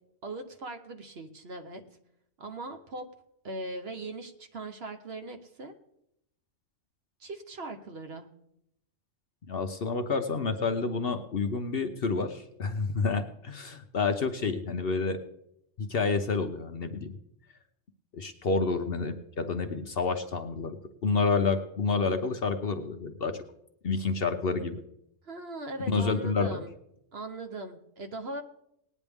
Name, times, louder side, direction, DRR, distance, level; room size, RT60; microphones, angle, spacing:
voice 1, 0.2-1.8 2.4-3.0 3.4-5.7 7.2-8.3 25.2-26.7 27.1-28.4, right 2 dB, 50° right, 7 dB, 1.1 m, -39 dB
voice 2, 9.5-15.2 15.8-17.2 18.1-23.4 23.8-24.8 25.9-26.6, left 4 dB, 50° left, 7 dB, 0.8 m, -29 dB
19.0 x 9.6 x 3.5 m, 0.78 s
omnidirectional pair, 1.4 m